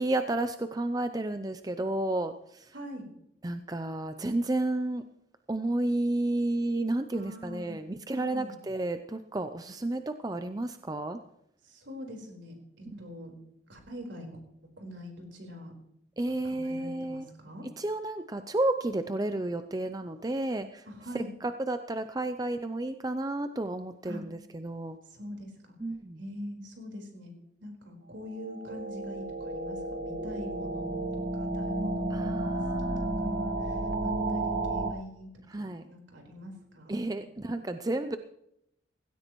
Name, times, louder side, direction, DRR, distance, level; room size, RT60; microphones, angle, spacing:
voice 1, 0.0-2.7 3.4-5.0 5.5-11.2 16.2-17.3 17.8-20.8 21.1-25.0 25.8-26.2 32.1-33.2 35.5-35.9 36.9-38.2, right 2 dB, 20° right, 9 dB, 0.5 m, -31 dB
voice 2, 2.7-3.0 7.1-7.8 8.2-8.5 11.6-13.3 13.7-14.3 14.8-15.7 16.3-17.7 20.9-21.3 24.0-24.2 25.1-25.5 26.2-27.3 27.6-32.6 33.0-37.0, left 1 dB, 70° right, 1 dB, 4.4 m, -43 dB
sound 1, 28.3-34.9, right 2 dB, 45° right, 1.3 m, -32 dB
17.0 x 16.5 x 3.1 m, 0.79 s
head